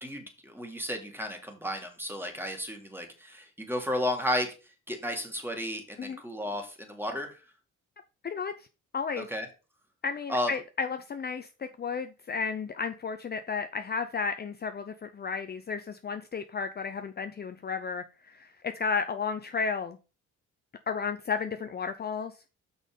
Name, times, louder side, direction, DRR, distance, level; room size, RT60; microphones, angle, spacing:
voice 1, 0.0-4.6 4.9-7.4 9.2-9.5 10.3-10.5, left 1 dB, 5° right, 2.2 m, -33 dB
voice 2, 8.2-8.7 8.9-9.3 10.0-20.0 20.9-22.4, left 5 dB, 35° left, 0.6 m, -33 dB
6.2 x 5.6 x 5.1 m
cardioid pair, 90°, 30 cm